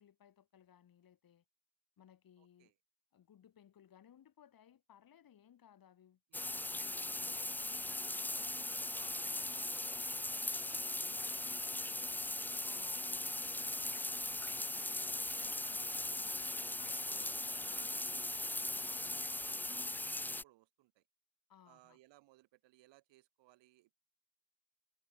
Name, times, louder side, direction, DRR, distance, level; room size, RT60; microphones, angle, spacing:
voice 1, 0.0-1.4 2.0-2.7 3.1-8.1 12.7-14.1 16.8-17.1 21.5-22.0, left 9 dB, 45° left, 7.5 m, -64 dB
voice 2, 2.4-2.7 6.3-7.0 8.9-12.4 14.7-16.0 16.9-21.0 21.7-24.0, right 17 dB, 65° right, 4.2 m, -66 dB
sound 1, 6.3-20.4, left 2 dB, 5° left, 0.4 m, -39 dB
hypercardioid pair, 70°, 46 cm